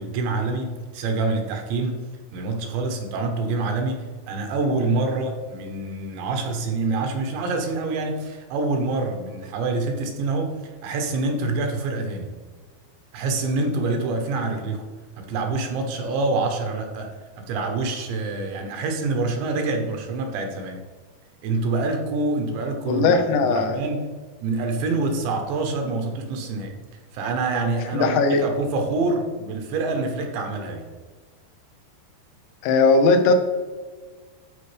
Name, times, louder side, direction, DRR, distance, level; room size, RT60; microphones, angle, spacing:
voice 1, 0.0-2.0 2.3-10.5 10.8-12.3 13.1-14.8 15.2-17.1 17.4-20.8 21.4-24.1 24.4-26.7 27.1-30.8, right 3 dB, 80° right, 3 dB, 3.2 m, -26 dB
voice 2, 22.9-23.8 27.9-28.4 32.6-33.3, left 3 dB, 80° left, 6 dB, 3.0 m, -18 dB
13.0 x 4.8 x 3.3 m, 1.4 s
omnidirectional pair, 5.2 m